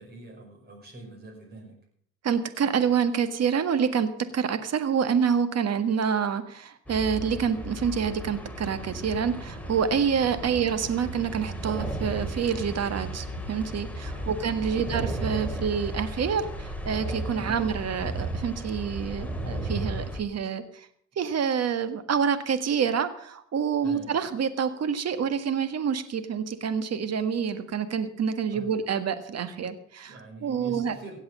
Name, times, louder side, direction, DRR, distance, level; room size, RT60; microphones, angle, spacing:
voice 1, 0.0-1.8 14.1-14.3 14.7-14.9 17.3-17.6 23.8-24.1 28.5-28.7 30.1-31.2, right 2 dB, 30° right, 0 dB, 5.6 m, -44 dB
voice 2, 2.2-20.9 21.1-30.9, right 7 dB, 55° right, 10 dB, 1.7 m, -27 dB
sound 1, 6.9-20.2, right 1 dB, 5° left, 2.7 m, -34 dB
16.5 x 7.9 x 7.5 m, 0.62 s
cardioid pair, 90°, 30 cm